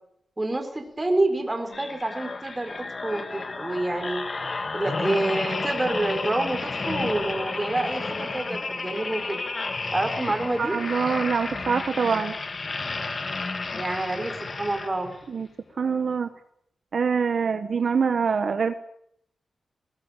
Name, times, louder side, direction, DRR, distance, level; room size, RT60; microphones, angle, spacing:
voice 1, 0.4-4.2 4.7-9.4 9.9-10.8 13.7-15.1, right 2 dB, 15° right, 6 dB, 4.3 m, -28 dB
sound 1, 1.7-15.3 15.8-16.0, left 3 dB, 35° left, 1.9 m, -32 dB
voice 2, 10.6-12.3 15.3-15.5 15.8-16.3 16.9-18.7, right 5 dB, 55° right, 9 dB, 1.2 m, -24 dB
20.5 x 18.5 x 9.1 m, 0.71 s
wide cardioid pair, 135°, 0 cm